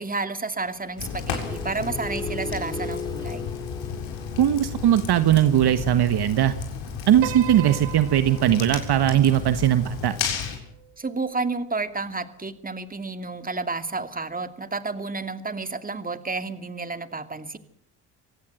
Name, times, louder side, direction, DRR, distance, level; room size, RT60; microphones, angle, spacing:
voice 1, 0.0-3.5 11.0-17.6, right 3 dB, 15° right, 9 dB, 2.6 m, -31 dB
sound 1, 0.6-6.6 8.2-8.6, left 2 dB, 10° left, 2.8 m, -38 dB
Fire, 1.0-10.6, left 7 dB, 65° left, 6.9 m, -33 dB
voice 2, 4.4-6.5 7.1-10.1, right 11 dB, 55° right, 11 dB, 1.5 m, -19 dB
Piano, 7.2-11.6, right 14 dB, 70° right, 1.6 m, -40 dB
26.5 x 17.5 x 8.0 m, 0.67 s
supercardioid pair, 70°, 48 cm